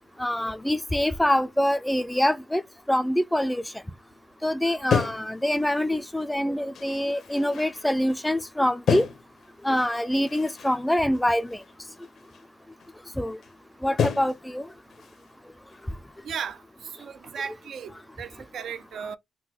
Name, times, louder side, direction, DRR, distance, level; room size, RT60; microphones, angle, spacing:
voice 1, 0.2-2.6 2.9-3.6 4.4-9.1 9.6-11.6 13.2-13.4 13.8-14.7, left 1 dB, 5° left, 0.3 m, -25 dB
sound 1, 4.9-6.3 6.7-8.5 8.9-10.8 11.1-12.4 12.8-12.9 13.4-13.5 14.0-14.5 14.9-15.3 15.7-16.2, left 6 dB, 65° left, 0.6 m, -32 dB
voice 2, 16.2-16.6 17.0-19.2, right 7 dB, 70° right, 0.4 m, -35 dB
3.8 x 2.1 x 2.9 m
cardioid pair, 85°, 0 cm